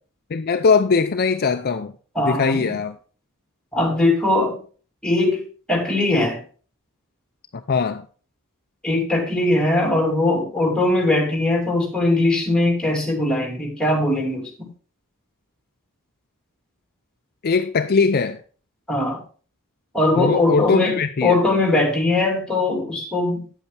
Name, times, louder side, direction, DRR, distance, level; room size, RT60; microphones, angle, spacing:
voice 1, 0.3-1.9 2.3-3.0 7.7-8.0 17.4-18.4 20.2-21.4, left 4 dB, 45° left, 0.5 m, -20 dB
voice 2, 2.1-2.8 3.7-4.6 5.0-5.4 5.7-6.4 8.8-14.7 18.9-19.2 19.9-23.4, left 2 dB, 5° left, 2.7 m, -20 dB
9.3 x 8.1 x 3.3 m
head